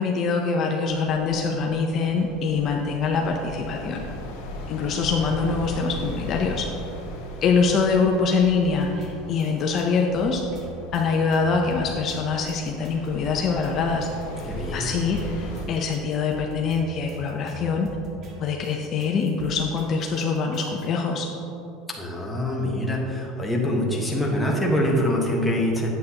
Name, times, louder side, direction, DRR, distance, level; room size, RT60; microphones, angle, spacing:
voice 1, 0.0-4.0 4.7-6.7 7.4-10.4 10.9-14.1 14.7-18.0 18.4-21.3, left 5 dB, 45° left, 1 dB, 0.7 m, -24 dB
sound 1, 0.9-15.6, left 1 dB, 85° left, 1.7 m, -38 dB
sound 2, 8.6-20.9, right 1 dB, 45° right, 1.6 m, -43 dB
voice 2, 14.4-14.8 22.0-25.9, left 1 dB, 5° left, -2 dB, 1.3 m, -24 dB
9.3 x 7.8 x 2.9 m, 2.8 s
supercardioid pair, 125°, 0 cm